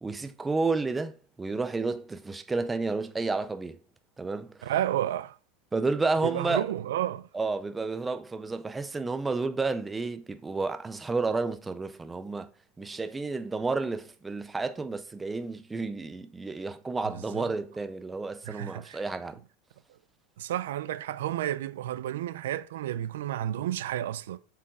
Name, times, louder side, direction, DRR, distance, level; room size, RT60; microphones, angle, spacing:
voice 1, 0.0-3.8 4.2-4.7 5.7-6.6 7.3-12.5 12.8-19.4, right 3 dB, 10° right, 0.5 m, -31 dB
voice 2, 4.6-5.4 6.2-7.3 17.0-17.5 18.4-19.0 20.4-24.4, right 12 dB, 90° right, 0.6 m, -31 dB
7.2 x 4.7 x 4.9 m
supercardioid pair, 165°, 0 cm